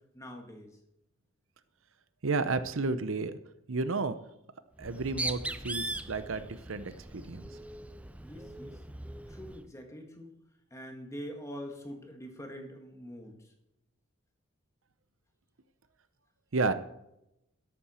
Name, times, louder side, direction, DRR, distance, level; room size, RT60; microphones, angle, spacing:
voice 1, 0.1-0.8 8.2-8.8 9.3-10.4 10.7-13.4, equal, 15° left, 3 dB, 1.8 m, -44 dB
voice 2, 2.2-3.4 3.7-4.2 4.8-6.8 7.1-7.5 16.5-16.7, right 3 dB, 65° right, 12 dB, 0.7 m, -31 dB
Bird, 4.8-9.6, right 2 dB, 5° right, 0.4 m, -40 dB
13.0 x 11.5 x 4.4 m, 0.84 s
head